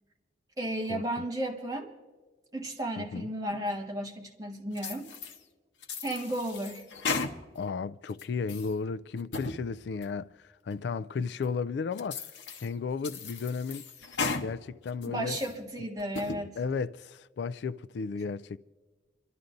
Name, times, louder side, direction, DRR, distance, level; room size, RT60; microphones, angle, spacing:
voice 1, 0.6-1.9 2.5-5.1 6.0-6.8 15.1-16.6, right 1 dB, 20° right, 1.5 m, -34 dB
sound 1, 4.8-5.4 5.8-7.7 8.1-8.7 9.2-9.6 10.0-10.1 10.7-10.8 11.4-11.5 12.0-12.7 13.0-14.5 14.9-15.5 16.0-16.4, left 4 dB, 90° left, 0.9 m, -36 dB
voice 2, 7.6-10.3 10.6-12.3 12.6-13.9 14.4-15.4 16.6-18.6, left 5 dB, 70° left, 0.3 m, -34 dB
28.0 x 12.5 x 2.6 m
head